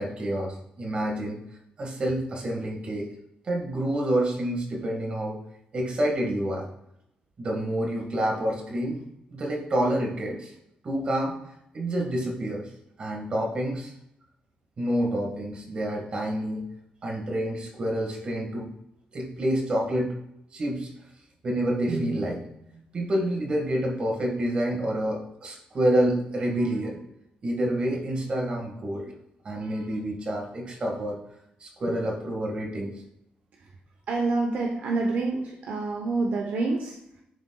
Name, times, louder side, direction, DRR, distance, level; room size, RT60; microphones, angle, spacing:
voice 1, 0.0-1.4 1.8-3.1 3.5-5.4 5.7-6.7 7.4-9.0 9.3-10.5 10.8-11.4 11.7-12.7 13.0-13.9 14.8-16.6 17.0-18.7 19.1-20.1 20.5-20.9 21.4-27.0 27.4-29.1 29.4-31.2 31.6-32.9, right 1 dB, 35° right, -1 dB, 1.6 m, -28 dB
voice 2, 34.1-37.0, right 3 dB, 65° right, 0 dB, 0.8 m, -27 dB
11.0 x 4.1 x 2.3 m, 0.79 s
cardioid pair, 150°, 3 cm